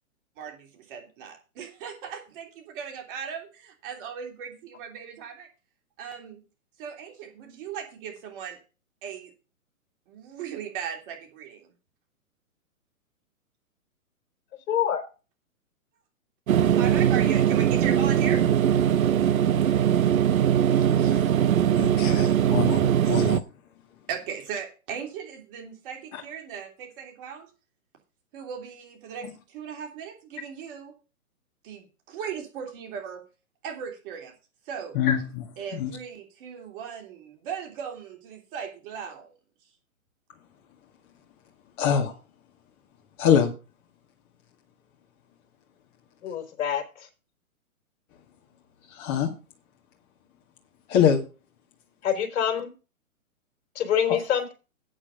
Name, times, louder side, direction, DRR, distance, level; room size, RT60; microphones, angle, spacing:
voice 1, 0.4-5.5 6.0-6.4 6.8-8.6 9.0-9.3 10.1-11.7 16.7-18.5 21.0-21.1 24.1-27.5 28.3-30.9 31.6-33.2 33.6-34.3 34.7-35.0 35.6-39.3, right 7 dB, 40° right, 2 dB, 3.1 m, -37 dB
voice 2, 14.7-15.0 46.2-46.8 52.0-52.7 53.8-54.5, left 9 dB, 55° left, 5 dB, 4.1 m, -25 dB
sound 1, 16.5-23.4, right 9 dB, 70° right, 0.9 m, -21 dB
voice 3, 21.8-22.8 23.1-23.4 35.0-35.4 35.7-35.9 41.8-42.1 43.2-43.5 49.0-49.3 50.9-51.2 54.1-54.2, left 8 dB, 30° left, 1 dB, 2.0 m, -23 dB
8.7 x 7.2 x 6.7 m, 0.33 s
hypercardioid pair, 135°, 42 cm